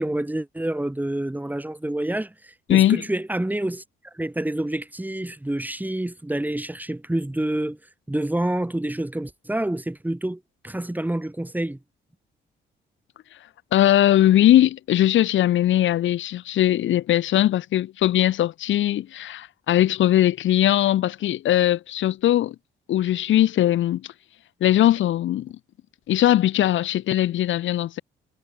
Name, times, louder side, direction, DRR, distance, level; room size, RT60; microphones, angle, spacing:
voice 1, 0.0-3.8 4.1-7.8 8.1-11.8, right 1 dB, 10° right, 6.3 m, -28 dB
voice 2, 2.7-3.0 13.7-22.6 22.9-24.0 24.6-25.5 26.1-28.0, left 12 dB, 75° left, 1.9 m, -20 dB
cardioid pair, 90°, 20 cm